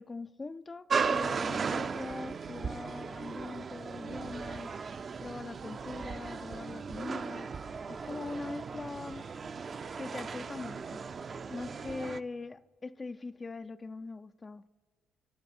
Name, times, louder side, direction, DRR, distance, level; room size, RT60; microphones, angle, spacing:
voice 1, 0.0-4.7 5.2-7.5 7.9-9.3 10.0-11.0 11.5-14.6, left 3 dB, 25° left, 0.4 m, -42 dB
sound 1, 0.9-12.2, right 5 dB, 40° right, 0.5 m, -36 dB
26.5 x 11.0 x 4.3 m
cardioid pair, 95°, 0 cm